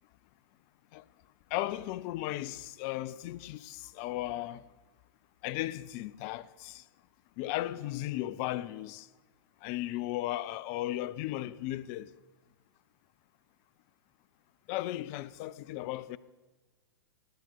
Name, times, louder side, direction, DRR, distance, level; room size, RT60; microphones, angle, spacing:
voice 1, 1.5-4.6 5.4-6.8 7.4-9.1 9.6-12.1 14.7-16.2, left 15 dB, 35° left, 0.4 m, -36 dB
11.0 x 8.7 x 5.2 m
figure-of-eight pair, 110°, 13 cm